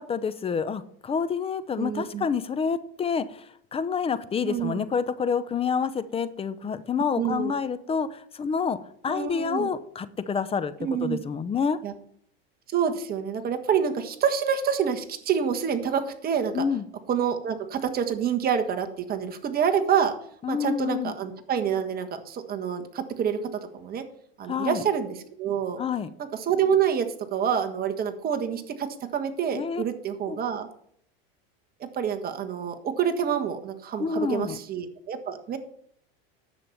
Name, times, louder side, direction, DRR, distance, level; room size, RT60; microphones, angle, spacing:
voice 1, 0.0-8.8 9.0-10.7 11.0-11.8 16.5-16.9 20.4-21.2 24.5-24.9 25.8-26.1 29.5-29.8 30.3-30.4 34.0-34.6, left 6 dB, 20° left, 14 dB, 0.6 m, -28 dB
voice 2, 1.8-2.2 4.4-4.8 7.2-7.5 9.1-9.7 10.8-11.2 11.8-11.9 12.7-16.5 17.1-20.1 20.5-23.4 23.7-24.0 24.4-25.8 26.5-30.7 32.0-35.6, right 8 dB, 30° right, 6 dB, 1.5 m, -27 dB
10.5 x 6.9 x 5.7 m, 0.66 s
supercardioid pair, 120°, 29 cm